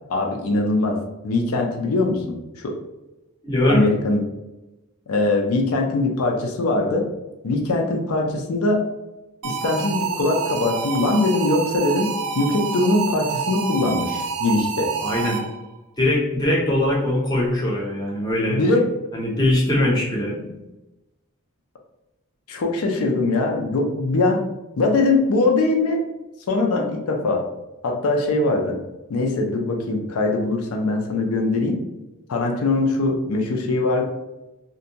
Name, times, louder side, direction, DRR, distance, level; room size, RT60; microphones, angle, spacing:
voice 1, 0.1-2.8 3.7-4.2 5.1-7.1 7.4-8.9 9.4-14.9 18.5-18.9 20.3-20.5 22.5-24.5 24.8-26.0 26.5-27.5 27.8-28.8 29.1-31.8 32.3-34.0, left 2 dB, 85° left, 2 dB, 0.4 m, -22 dB
voice 2, 3.4-3.8 15.0-15.4 16.0-18.6 19.1-20.4, left 1 dB, 20° left, -3 dB, 0.5 m, -21 dB
sound 1, 9.4-15.7, right 6 dB, 85° right, 0.3 m, -28 dB
2.6 x 2.1 x 2.7 m, 1.0 s
head